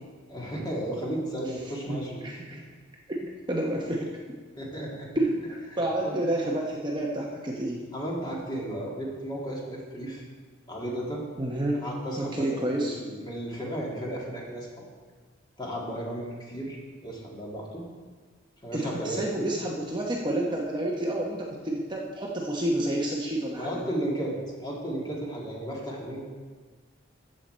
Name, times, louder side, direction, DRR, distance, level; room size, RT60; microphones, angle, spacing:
voice 1, 0.3-2.2 2.5-2.6 4.6-5.1 5.7-6.4 7.9-10.3 10.7-11.2 11.8-14.7 15.6-17.8 18.6-19.6 23.6-26.2, right 1 dB, 20° left, -3 dB, 2.0 m, -34 dB
voice 2, 1.9-2.6 3.1-3.2 3.5-4.1 5.1-7.9 11.4-11.8 12.2-13.0 18.7-23.8, right 1 dB, 20° right, -2 dB, 0.9 m, -29 dB
14.0 x 6.6 x 4.3 m, 1.5 s
head